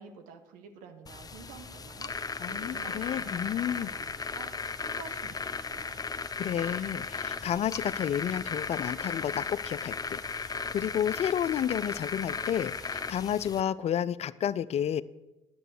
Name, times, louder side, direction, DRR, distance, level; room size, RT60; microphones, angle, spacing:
voice 1, 0.0-2.1 2.5-6.0, right 6 dB, 70° right, 6 dB, 1.3 m, -49 dB
sound 1, 1.0-13.6, left 4 dB, 25° left, 0.8 m, -36 dB
voice 2, 2.4-3.9 6.4-15.0, left 9 dB, 50° left, 18 dB, 0.5 m, -31 dB
11.0 x 7.7 x 6.6 m, 1.1 s
hypercardioid pair, 50°, 14 cm